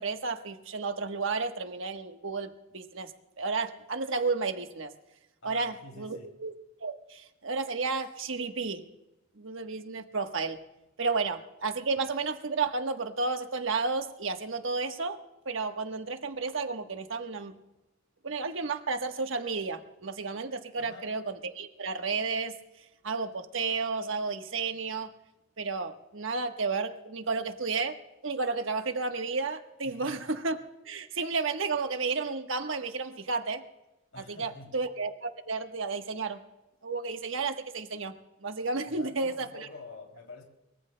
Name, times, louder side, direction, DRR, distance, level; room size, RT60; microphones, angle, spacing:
voice 1, 0.0-3.1 3.4-4.9 5.4-6.2 6.4-6.5 6.8-8.8 9.4-10.6 11.0-15.2 15.4-17.5 18.2-22.5 23.0-25.1 25.6-27.9 28.2-30.6 30.8-33.6 34.3-36.4 36.8-38.1 38.4-39.7, right 4 dB, 70° right, 6 dB, 1.2 m, -32 dB
voice 2, 5.4-6.3 20.8-21.1 29.8-30.3 34.1-34.8 38.8-40.4, left 2 dB, 80° left, 2 dB, 2.8 m, -47 dB
23.5 x 23.0 x 2.2 m, 0.96 s
head